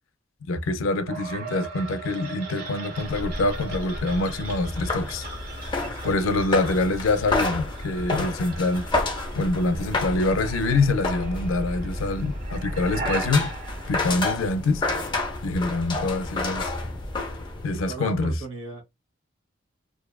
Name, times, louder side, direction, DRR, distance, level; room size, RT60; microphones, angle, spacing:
voice 1, 0.4-8.9 9.4-13.5 13.9-14.9 15.4-16.7 17.6-18.4, left 2 dB, 85° left, 0.4 m, -25 dB
sound 1, 1.1-15.0, right 2 dB, 50° right, 0.9 m, -37 dB
sound 2, 2.9-17.8, left 2 dB, 25° left, 0.5 m, -31 dB
voice 2, 5.8-6.2 17.7-18.8, right 3 dB, 85° right, 1.0 m, -38 dB
2.6 x 2.3 x 2.2 m
head